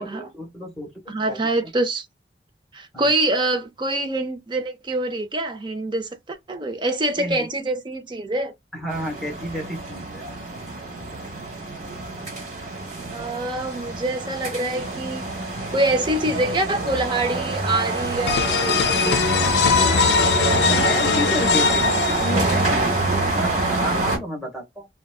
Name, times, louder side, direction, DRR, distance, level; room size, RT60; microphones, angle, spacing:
voice 1, 0.0-1.4 2.9-3.1 7.2-7.5 8.7-10.2 20.5-23.0 23.3-24.9, equal, 5° left, 1.2 m, -31 dB
voice 2, 1.1-2.1 2.7-8.5 12.9-15.3 15.7-19.3, right 2 dB, 25° right, 0.5 m, -25 dB
sound 1, 8.9-24.2, right 2 dB, 40° right, 1.5 m, -26 dB
sound 2, 18.3-22.9, left 5 dB, 70° left, 0.4 m, -21 dB
3.8 x 2.2 x 2.3 m
head